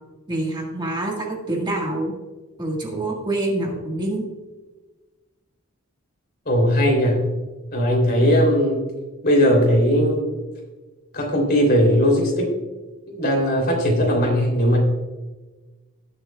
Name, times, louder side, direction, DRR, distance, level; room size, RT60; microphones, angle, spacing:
voice 1, 0.3-2.1 2.6-4.2, right 2 dB, 20° right, -1 dB, 1.7 m, -26 dB
voice 2, 6.4-7.2 7.7-8.8 9.2-10.3 11.1-12.5 13.1-14.8, equal, 50° left, 0 dB, 3.2 m, -18 dB
19.0 x 7.5 x 2.3 m, 1.2 s
head